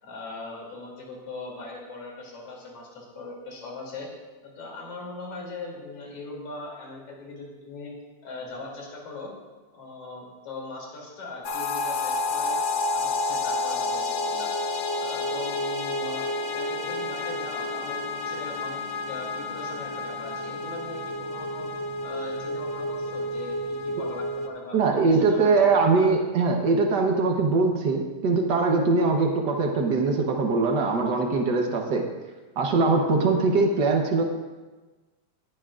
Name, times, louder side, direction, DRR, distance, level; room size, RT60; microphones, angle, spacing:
voice 1, 0.0-4.1 4.4-7.9 8.2-9.3 9.7-12.6 12.9-14.5 14.9-16.2 16.5-18.8 19.1-21.7 22.0-23.6 23.8-26.1, left 3 dB, 50° left, -3 dB, 3.8 m, -40 dB
sound 1, 11.4-24.5, left 2 dB, 85° left, 1.0 m, -30 dB
voice 2, 24.7-32.1 32.6-34.2, right 3 dB, 70° right, 1 dB, 0.9 m, -22 dB
20.0 x 10.0 x 2.5 m, 1.2 s
omnidirectional pair, 3.5 m